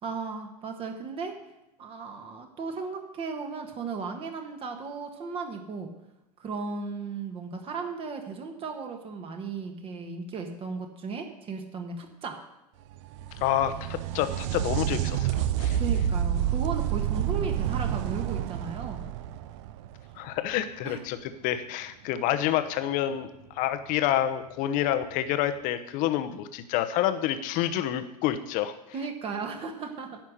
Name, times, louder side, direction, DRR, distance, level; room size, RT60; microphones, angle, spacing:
voice 1, 0.0-1.3 1.8-5.9 6.4-12.4 15.8-19.0 20.8-21.0 28.9-30.2, right 4 dB, 25° right, 4 dB, 1.5 m, -35 dB
sound 1, 12.9-20.5 23.9-24.0 25.0-25.1, right 10 dB, 45° right, 0.6 m, -29 dB
voice 2, 13.4-15.8 20.2-21.2 21.4-23.3 23.5-28.8, left 12 dB, 40° left, 10 dB, 1.0 m, -28 dB
10.5 x 5.9 x 8.1 m, 0.91 s
figure-of-eight pair, 95°, 21 cm